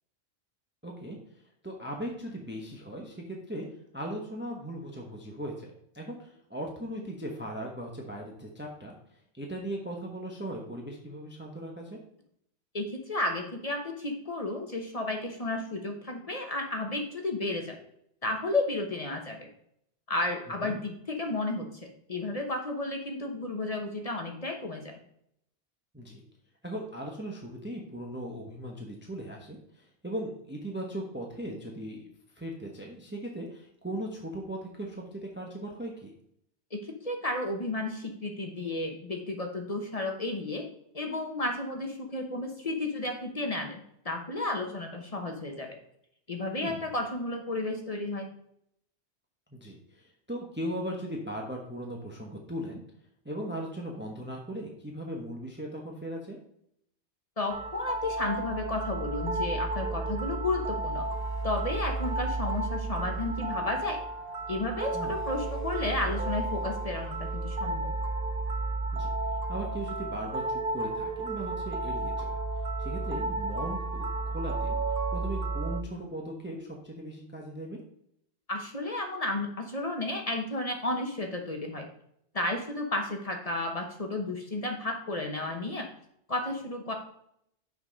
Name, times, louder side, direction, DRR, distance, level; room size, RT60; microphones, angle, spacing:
voice 1, 0.8-1.2 1.6-3.7 3.9-8.9 9.3-12.0 20.6-20.8 25.9-26.2 26.6-32.1 32.3-36.1 46.6-46.8 49.5-52.8 53.2-56.4 64.9-65.2 68.9-69.1 69.5-72.4 72.8-74.8 75.1-77.8, right 1 dB, 10° right, 0 dB, 1.0 m, -38 dB
voice 2, 12.7-17.8 18.2-19.5 20.1-25.0 36.7-40.7 40.9-45.8 46.3-48.3 57.4-61.0 61.4-64.0 64.5-67.9 78.5-81.9 82.3-85.9 86.3-86.9, left 2 dB, 35° left, 3 dB, 1.0 m, -32 dB
sound 1, 57.5-75.8, right 2 dB, 55° right, 0.9 m, -32 dB
6.3 x 5.2 x 5.3 m, 0.72 s
omnidirectional pair, 1.1 m